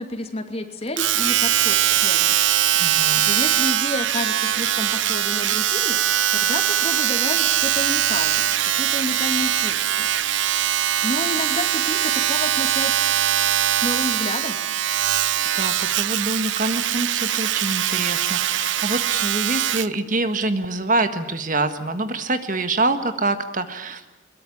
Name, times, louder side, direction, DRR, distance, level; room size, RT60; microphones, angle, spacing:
voice 1, 0.0-2.3 2.9-10.1 11.0-13.0 13.8-14.6, left 1 dB, 35° left, 6 dB, 2.7 m, -30 dB
Domestic sounds home sounds, 1.0-20.0 20.6-20.7, right 11 dB, 85° right, 0.8 m, -21 dB
voice 2, 2.8-3.3 15.5-24.1, right 2 dB, 45° right, 9 dB, 1.6 m, -25 dB
23.0 x 22.0 x 10.0 m, 1.0 s
head